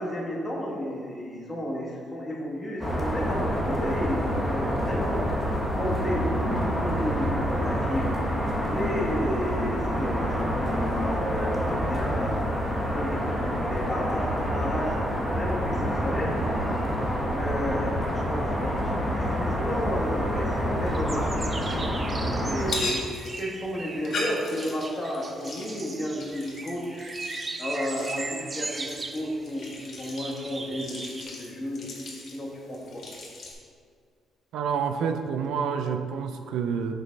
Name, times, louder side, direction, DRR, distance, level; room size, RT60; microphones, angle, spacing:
voice 1, 0.0-5.3 5.8-8.1 8.7-15.0 15.4-16.3 17.4-23.0 23.4-27.1 27.6-31.9 32.3-33.0, equal, 10° left, -5 dB, 1.9 m, -32 dB
sound 1, 2.8-22.7, equal, 10° right, 1.4 m, -27 dB
sound 2, 20.9-31.2, right 3 dB, 30° right, 0.5 m, -38 dB
sound 3, 22.6-33.5, left 2 dB, 55° left, 1.7 m, -39 dB
voice 2, 34.5-36.9, right 6 dB, 80° right, 8 dB, 0.5 m, -28 dB
7.1 x 4.1 x 5.3 m, 2.1 s
cardioid pair, 90°, 0 cm